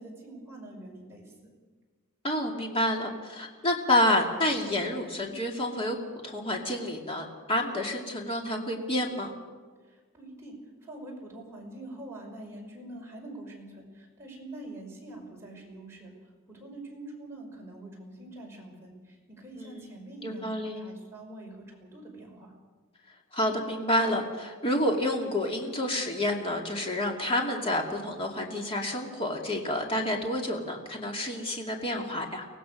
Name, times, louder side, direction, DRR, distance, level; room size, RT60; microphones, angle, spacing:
voice 1, 0.0-1.3 9.8-22.5, right 1 dB, 10° right, -2 dB, 5.5 m, -45 dB
voice 2, 2.2-6.0 6.2-9.3 19.6-19.9 20.2-20.8 23.3-32.5, left 1 dB, 25° left, 1 dB, 2.4 m, -29 dB
24.5 x 18.5 x 6.5 m, 1.4 s
head